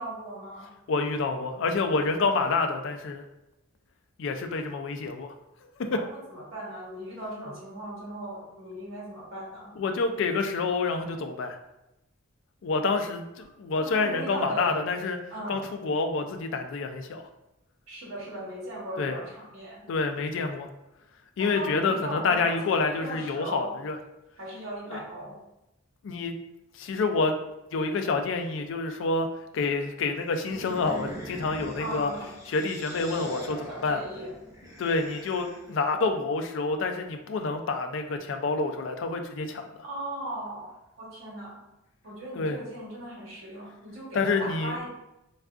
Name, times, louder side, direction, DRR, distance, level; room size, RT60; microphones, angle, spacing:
voice 1, 0.0-0.7 5.8-9.7 13.8-14.8 15.3-15.7 17.9-19.8 21.4-23.7 24.4-25.4 31.8-32.3 33.7-34.3 39.8-41.6 42.0-44.9, right 1 dB, 75° right, -5 dB, 0.9 m, -38 dB
voice 2, 0.9-3.2 4.2-5.3 5.9-6.0 9.8-11.6 12.6-15.2 15.5-17.2 19.0-19.2 19.9-20.7 21.4-24.0 24.9-25.0 26.0-26.3 26.7-27.4 27.7-32.1 32.5-34.0 34.8-39.8 42.4-42.6 44.1-44.8, left 3 dB, 65° left, 7 dB, 0.3 m, -28 dB
sound 1, 30.3-35.8, right 1 dB, 15° right, 0.7 m, -42 dB
3.5 x 2.3 x 2.4 m, 0.91 s
head